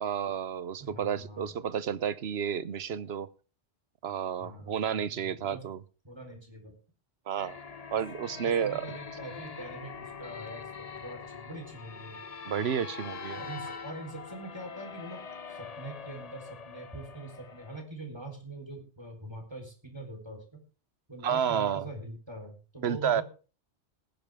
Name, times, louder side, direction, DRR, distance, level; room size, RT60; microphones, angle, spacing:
voice 1, 0.0-3.3 4.0-5.8 7.3-7.6 7.9-8.9 12.5-13.4 21.2-21.9 22.8-23.2, right 8 dB, 70° right, 1.1 m, -31 dB
voice 2, 0.8-1.5 4.4-5.6 6.0-6.7 8.3-12.2 13.4-15.2 15.5-20.6 21.1-23.2, right 2 dB, 20° right, 4.1 m, -43 dB
sound 1, 7.4-17.8, left 5 dB, 40° left, 0.8 m, -43 dB
19.0 x 10.5 x 3.6 m
omnidirectional pair, 1.2 m